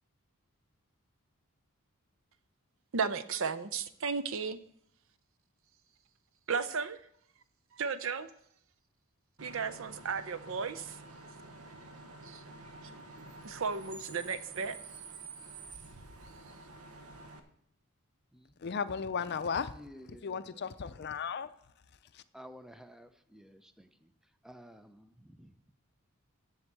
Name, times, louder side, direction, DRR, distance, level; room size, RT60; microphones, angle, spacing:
voice 1, 2.9-4.6 6.5-7.0 7.8-8.3 9.4-11.0 12.2-12.4 13.4-14.8, right 5 dB, 60° right, 0.6 m, -34 dB
Bus / Idling / Screech, 9.4-17.4, right 3 dB, 85° right, 1.1 m, -49 dB
voice 2, 18.6-19.7 20.2-21.5 22.1-22.2, left 6 dB, 50° left, 0.5 m, -35 dB
voice 3, 19.6-20.9 22.3-24.1 24.4-25.5, equal, ahead, 0.5 m, -53 dB
7.9 x 7.3 x 7.4 m
head